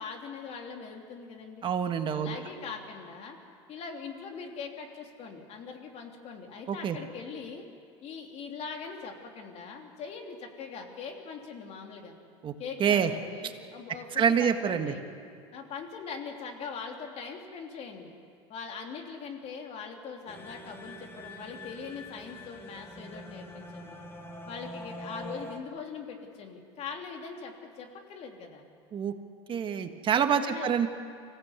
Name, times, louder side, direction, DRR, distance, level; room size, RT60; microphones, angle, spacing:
voice 1, 0.0-1.7 2.1-3.4 3.7-7.6 8.0-12.1 12.6-15.0 15.5-18.1 18.5-24.0 24.5-28.6 30.3-30.7, left 5 dB, 50° left, 3 dB, 3.1 m, -41 dB
voice 2, 1.6-2.4 6.7-7.0 12.4-12.5 12.8-13.1 14.2-14.9 28.9-29.1 29.5-30.9, right 8 dB, 35° right, 7 dB, 1.6 m, -26 dB
sound 1, 20.3-25.6, left 1 dB, 15° left, 2.1 m, -44 dB
24.5 x 16.5 x 8.3 m, 2.3 s
supercardioid pair, 105°, 14 cm